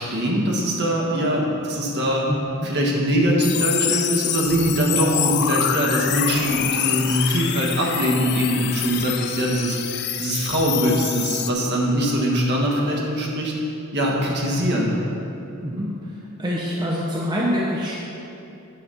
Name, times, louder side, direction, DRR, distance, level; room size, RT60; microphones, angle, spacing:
voice 1, 0.0-2.3 2.6-13.5 13.9-14.9, equal, 50° right, -2 dB, 1.5 m, -22 dB
voice 2, 2.3-2.7 15.6-15.9 16.4-17.9, equal, 20° right, -4 dB, 0.8 m, -25 dB
sound 1, 3.4-11.5, left 10 dB, 50° left, 0.4 m, -26 dB
9.4 x 4.1 x 6.9 m, 2.8 s
head